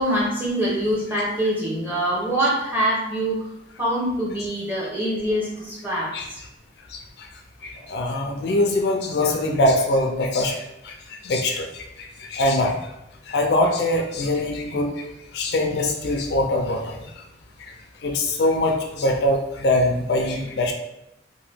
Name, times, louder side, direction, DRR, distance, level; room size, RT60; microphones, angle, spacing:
voice 1, 0.0-3.5 3.8-6.1, right 1 dB, 10° right, -6 dB, 0.8 m, -24 dB
voice 2, 6.9-7.3 7.6-12.7 13.3-14.9 15.3-17.0 17.6-17.7 18.0-20.7, left 1 dB, 65° left, 3 dB, 0.4 m, -23 dB
2.8 x 2.2 x 3.3 m, 0.86 s
head